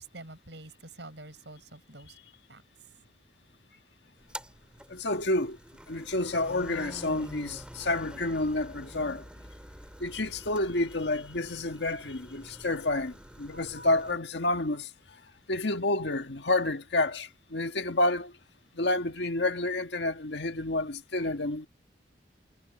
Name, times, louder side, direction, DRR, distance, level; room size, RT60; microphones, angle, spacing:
voice 1, 0.0-2.2 2.5-2.6, right 2 dB, 90° right, 5.7 m, -47 dB
sound 1, 4.2-14.1, equal, 5° right, 3.2 m, -47 dB
voice 2, 4.9-5.6 5.9-9.3 10.0-14.9 15.5-18.3 18.7-21.7, left 2 dB, 80° left, 1.6 m, -29 dB
head